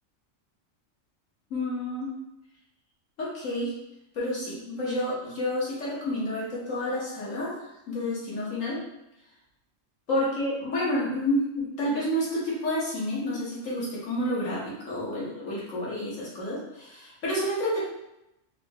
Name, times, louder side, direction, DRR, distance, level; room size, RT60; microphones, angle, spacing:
voice 1, 1.5-2.1 3.2-3.7 4.1-7.6 7.9-8.8 10.1-17.8, left 1 dB, 85° left, -7 dB, 1.6 m, -29 dB
4.3 x 2.0 x 3.5 m, 0.87 s
omnidirectional pair, 1.3 m